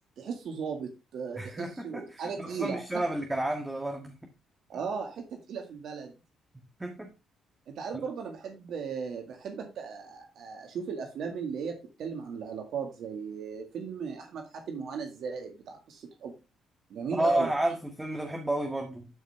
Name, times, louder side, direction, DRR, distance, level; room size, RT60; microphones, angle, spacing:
voice 1, 0.2-3.1 4.7-6.1 7.7-16.3 16.9-17.5, right 6 dB, 70° right, 1.9 m, -37 dB
voice 2, 1.4-4.1 6.8-7.1 17.1-19.1, right 1 dB, 10° right, 1.7 m, -31 dB
12.0 x 5.5 x 3.3 m
cardioid pair, 90°, 0 cm